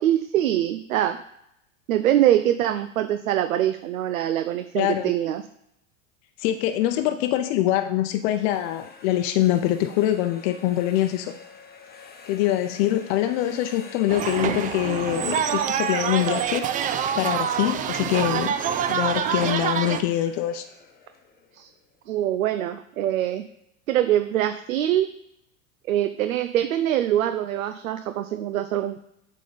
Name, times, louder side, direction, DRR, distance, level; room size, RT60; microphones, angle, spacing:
voice 1, 0.0-1.2 1.9-5.4 21.5-21.7 22.1-23.4 23.9-25.1 25.9-29.0, right 12 dB, 75° right, 9 dB, 0.6 m, -23 dB
voice 2, 4.7-5.1 6.4-11.3 12.3-16.7 17.1-18.5 18.9-20.6, left 13 dB, 50° left, 7 dB, 0.7 m, -24 dB
sound 1, 8.1-22.0, left 5 dB, 20° left, 1.1 m, -46 dB
sound 2, 14.1-20.0, right 8 dB, 20° right, 0.4 m, -26 dB
7.6 x 3.8 x 5.0 m, 0.80 s
hypercardioid pair, 95°, 41 cm